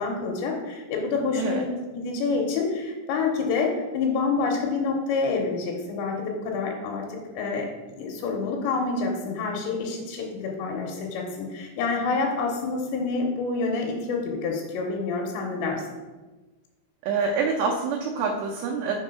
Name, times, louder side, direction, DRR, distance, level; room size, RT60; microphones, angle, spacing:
voice 1, 0.0-7.7 8.0-15.8, left 4 dB, 85° left, 0 dB, 3.0 m, -27 dB
voice 2, 17.0-18.9, right 5 dB, 80° right, -1 dB, 2.6 m, -26 dB
6.2 x 3.7 x 5.4 m, 1.2 s
omnidirectional pair, 5.2 m